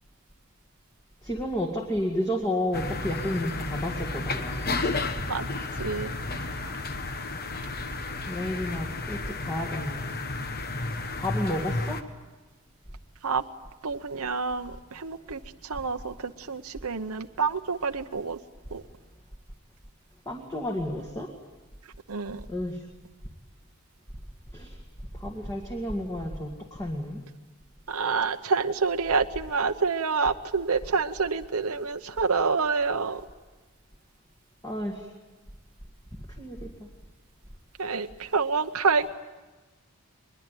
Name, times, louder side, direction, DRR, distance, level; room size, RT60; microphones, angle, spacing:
voice 1, 1.2-4.8 8.3-10.2 11.2-12.0 20.3-21.3 22.5-22.8 24.5-24.8 25.1-27.2 34.6-35.1 36.4-36.9, left 1 dB, 15° left, 1 dB, 1.9 m, -31 dB
sound 1, 2.7-12.0, left 2 dB, 45° left, 1.3 m, -32 dB
voice 2, 5.8-6.5 13.2-13.4 13.8-18.4 18.7-18.8 22.1-22.4 27.9-33.2 37.8-39.1, right 4 dB, 80° right, 7 dB, 0.9 m, -28 dB
22.0 x 21.5 x 9.2 m, 1.2 s
head